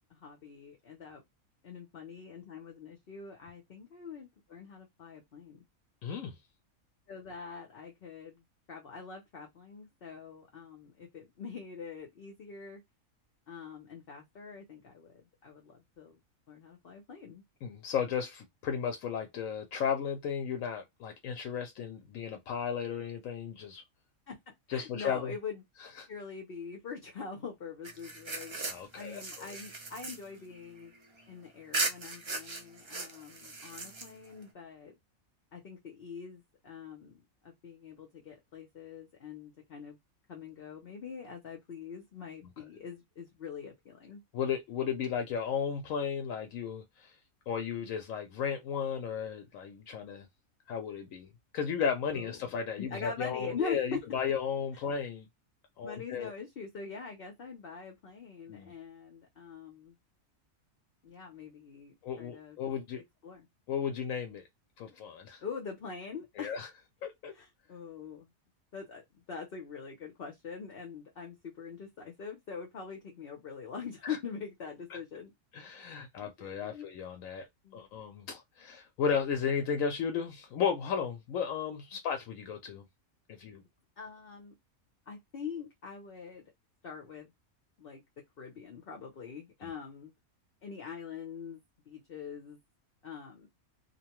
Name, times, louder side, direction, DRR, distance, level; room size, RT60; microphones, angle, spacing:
voice 1, 0.1-1.2 1.6-5.6 7.1-12.8 13.5-16.2 16.5-17.4 24.3-24.4 24.7-25.6 26.1-28.6 28.9-30.9 31.3-35.0 35.5-40.0 40.3-44.2 52.1-54.0 55.8-60.0 61.0-62.6 63.2-63.5 65.4-66.5 67.3-68.3 68.7-75.3 76.4-76.9 77.6-77.9 84.0-84.6 85.1-86.4 86.8-87.3 87.8-88.0 88.4-90.1 90.6-91.6 91.9-92.6 93.0-93.5, left 5 dB, 50° left, 0.8 m, -44 dB
voice 2, 6.0-6.4 17.6-23.8 24.7-25.3 26.0-26.1 28.6-29.5 44.3-47.1 47.5-50.3 50.7-55.3 55.8-56.3 58.5-58.7 62.0-63.0 63.7-64.4 64.8-65.4 66.4-66.7 67.0-67.3 74.0-74.2 74.9-75.0 75.5-77.5 77.7-82.8 83.3-83.6 89.6-89.7, left 7 dB, 75° left, 1.0 m, -34 dB
sound 1, 27.8-31.2 31.7-34.4, right 3 dB, 50° right, 0.3 m, -38 dB
2.8 x 2.1 x 2.9 m
omnidirectional pair, 1.4 m